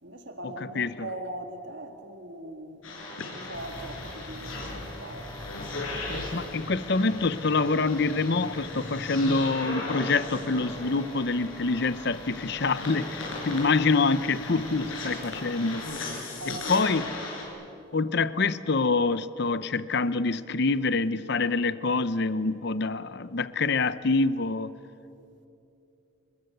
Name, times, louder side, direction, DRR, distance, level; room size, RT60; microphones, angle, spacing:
voice 1, 0.0-2.8 3.2-5.3 16.0-16.1 16.4-16.9, right 1 dB, 60° right, 5 dB, 2.1 m, -40 dB
sound 1, 2.8-17.4, left 2 dB, 80° left, 7.2 m, -37 dB
vespa scooter motor, 3.5-15.8, left 1 dB, 25° left, 3.3 m, -45 dB
voice 2, 6.3-16.1 16.7-17.1 17.9-24.7, left 3 dB, 55° left, 15 dB, 0.7 m, -26 dB
28.5 x 21.0 x 8.1 m, 2.9 s
head